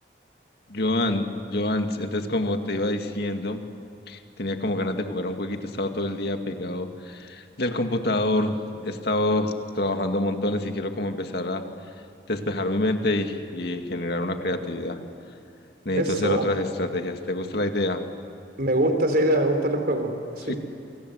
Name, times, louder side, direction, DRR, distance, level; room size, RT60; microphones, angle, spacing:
voice 1, 0.7-3.6 4.1-11.6 12.3-15.0 15.9-18.0 20.4-20.5, left 1 dB, 65° left, 5 dB, 2.2 m, -27 dB
voice 2, 15.9-16.5 18.6-20.6, right 1 dB, 60° right, 6 dB, 3.9 m, -23 dB
28.0 x 25.5 x 8.1 m, 2.6 s
head